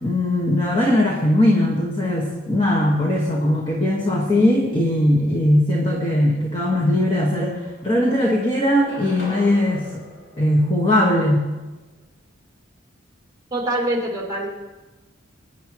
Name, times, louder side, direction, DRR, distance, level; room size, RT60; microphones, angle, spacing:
voice 1, 0.0-10.0 10.4-11.5, left 1 dB, 25° left, -2 dB, 1.6 m, -19 dB
sound 1, 7.4-8.2 8.7-11.3, equal, 65° left, 4.9 m, -40 dB
voice 2, 13.5-14.5, right 1 dB, 20° right, -2 dB, 2.4 m, -24 dB
23.0 x 10.5 x 3.1 m, 1.2 s
head